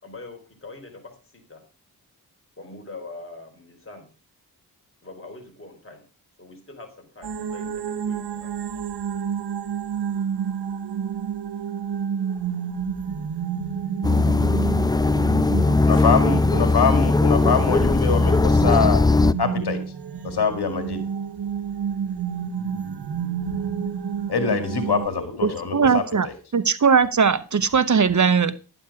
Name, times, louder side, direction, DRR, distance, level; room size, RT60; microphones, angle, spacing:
voice 1, 0.0-1.6 2.6-4.1 5.0-6.0 6.4-8.5 24.8-25.6, left 2 dB, 35° left, 3 dB, 4.2 m, -42 dB
sound 1, 7.2-25.1, right 7 dB, 80° right, 1.1 m, -30 dB
sound 2, 14.0-19.3, left 3 dB, 10° left, 0.4 m, -19 dB
voice 2, 15.6-19.0 19.4-19.8 20.2-21.0 24.3-26.0, left 5 dB, 75° left, 8 dB, 2.0 m, -24 dB
voice 3, 25.4-26.3 26.5-28.6, right 6 dB, 50° right, 14 dB, 0.9 m, -19 dB
11.0 x 8.8 x 4.8 m, 0.35 s
cardioid pair, 65°, 39 cm